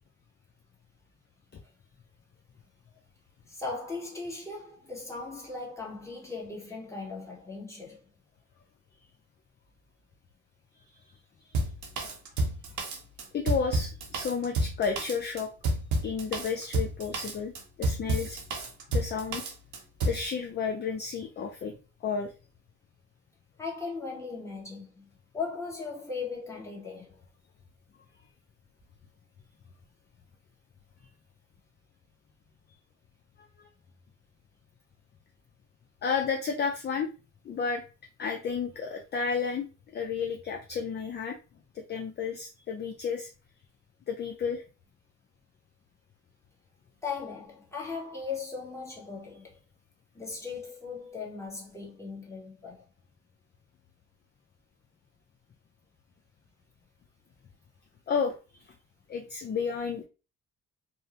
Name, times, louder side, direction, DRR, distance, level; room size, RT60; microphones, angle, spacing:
voice 1, 3.5-8.0 23.6-25.1 25.3-27.2 47.0-49.5 50.1-52.9, left 4 dB, 10° left, 1.1 m, -38 dB
Drum kit, 11.5-20.2, right 2 dB, 75° right, 0.8 m, -30 dB
voice 2, 13.3-15.5 16.0-17.5 17.8-18.4 18.9-19.4 20.0-21.7 22.0-22.3 33.6-33.7 36.0-37.1 37.4-37.8 38.2-41.4 41.7-43.3 44.1-44.6 58.1-58.4 59.1-60.0, left 6 dB, 35° left, 0.4 m, -32 dB
2.6 x 2.0 x 2.8 m
cardioid pair, 90°, 30 cm